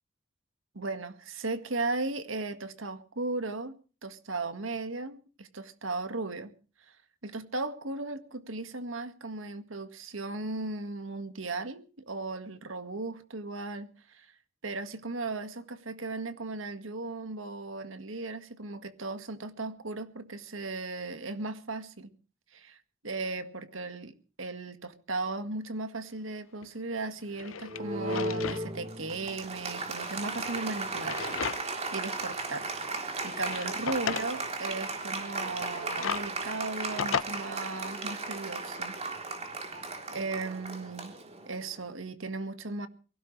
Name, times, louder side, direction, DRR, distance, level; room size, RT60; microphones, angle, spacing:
voice 1, 0.7-3.7 4.0-6.5 7.2-14.3 14.6-22.1 22.5-22.8 23.0-31.2 31.6-32.7 33.0-38.9 40.1-41.1 41.5-42.9, right 3 dB, 90° right, 1.9 m, -36 dB
Drawer open or close, 26.6-26.7 27.2-28.7 29.0-29.1 30.2-31.9 32.3-32.4 33.1-34.3 35.5-37.2, left 7 dB, 90° left, 0.7 m, -36 dB
Applause, 27.7-41.8, right 3 dB, 35° right, 3.5 m, -36 dB
23.0 x 16.5 x 3.3 m
head